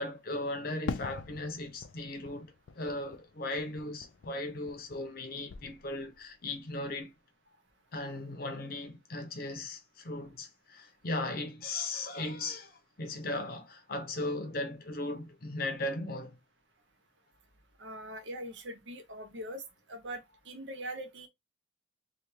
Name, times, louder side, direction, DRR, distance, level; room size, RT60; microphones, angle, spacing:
voice 1, 0.0-7.1 7.9-16.4, left 2 dB, 50° left, 0.7 m, -37 dB
Fireworks, 0.9-5.2 5.5-6.3, left 5 dB, 80° left, 0.4 m, -44 dB
voice 2, 17.8-21.3, right 1 dB, 75° right, 0.9 m, -42 dB
3.3 x 2.4 x 3.0 m
head